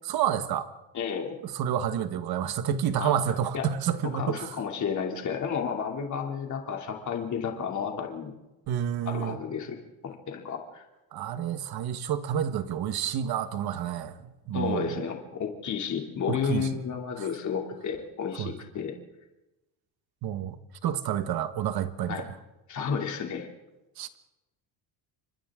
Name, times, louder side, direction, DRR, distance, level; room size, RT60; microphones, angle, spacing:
voice 1, 0.0-0.7 1.4-4.6 8.7-9.4 11.1-15.0 16.3-16.8 17.2-17.3 18.4-18.5 20.2-22.3 24.0-24.2, right 9 dB, 55° right, 10 dB, 1.4 m, -29 dB
voice 2, 0.9-1.4 3.0-3.1 3.5-3.7 4.1-8.3 9.1-9.8 10.0-10.8 14.5-18.9 22.1-22.3 22.7-23.5, left 6 dB, 40° left, 2 dB, 2.9 m, -32 dB
29.5 x 25.5 x 3.7 m, 1.0 s
cardioid pair, 170°, 45 cm